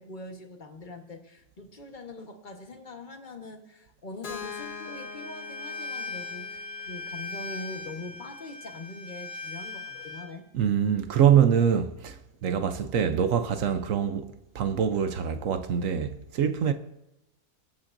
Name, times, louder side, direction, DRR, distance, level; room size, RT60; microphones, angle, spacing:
voice 1, 0.0-10.5, left 2 dB, 35° left, 1.3 m, -43 dB
Keyboard (musical), 4.2-8.1, left 6 dB, 80° left, 1.6 m, -44 dB
Bowed string instrument, 4.3-10.3, left 4 dB, 5° right, 2.5 m, -39 dB
voice 2, 10.5-16.7, right 8 dB, 65° right, 1.0 m, -24 dB
23.0 x 8.6 x 2.6 m
omnidirectional pair, 1.7 m